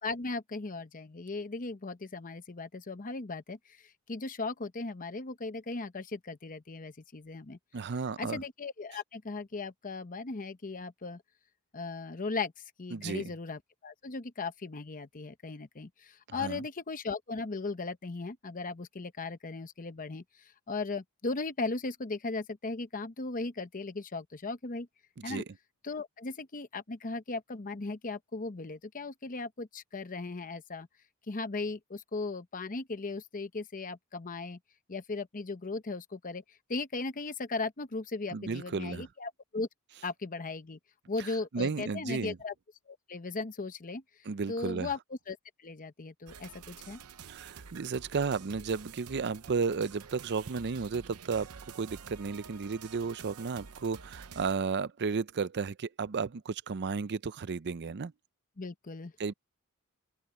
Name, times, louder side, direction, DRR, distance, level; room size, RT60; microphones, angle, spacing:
voice 1, 0.0-7.6 8.2-11.2 11.7-24.9 25.2-25.4 25.8-30.9 31.3-34.6 34.9-39.7 40.0-40.8 41.1-42.5 42.9-44.0 44.5-45.0 45.3-47.0 58.6-59.1, left 3 dB, 35° left, 0.8 m, -37 dB
voice 2, 7.7-8.4 12.9-13.3 16.3-16.6 25.2-25.4 38.3-39.1 41.2-41.3 41.5-42.4 44.3-44.9 47.2-51.5 51.7-58.1 59.2-59.3, right 5 dB, 50° right, 0.5 m, -33 dB
sound 1, 46.3-54.5, right 6 dB, 75° right, 0.8 m, -49 dB
open air
head